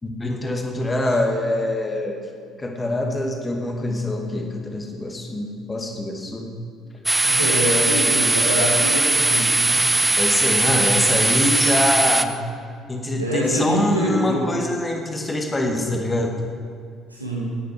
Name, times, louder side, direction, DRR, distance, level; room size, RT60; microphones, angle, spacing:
voice 1, 0.0-2.2 2.6-6.5 10.2-12.3 12.9-16.3, left 1 dB, 20° left, 2 dB, 2.2 m, -24 dB
sound 1, 7.1-12.3, right 2 dB, 10° right, 0.7 m, -19 dB
voice 2, 7.2-9.9 13.2-14.4 17.1-17.6, equal, 90° right, -4 dB, 2.2 m, -25 dB
18.0 x 9.5 x 4.9 m, 2.2 s
figure-of-eight pair, 50°, 0 cm